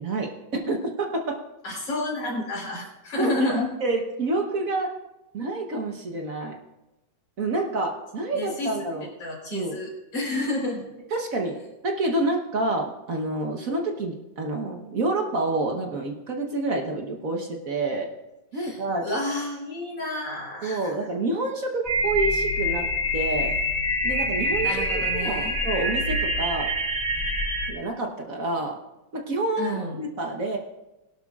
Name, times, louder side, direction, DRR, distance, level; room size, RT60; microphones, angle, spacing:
voice 1, 0.0-1.4 3.2-3.3 3.8-4.9 5.3-6.5 7.4-9.1 9.5-9.8 11.1-11.6 11.8-18.1 18.5-19.2 20.6-22.9 23.1-23.5 24.0-26.7 27.7-28.8 29.1-30.6, right 2 dB, 50° right, 2 dB, 1.4 m, -28 dB
voice 2, 1.6-3.7 8.3-8.7 9.2-10.8 18.5-20.9 24.6-25.6 29.6-30.0, left 1 dB, 75° left, -1 dB, 4.7 m, -30 dB
sound 1, 21.8-27.7, equal, 15° right, 3.5 m, -25 dB
21.0 x 12.0 x 2.4 m, 1.0 s
omnidirectional pair, 2.1 m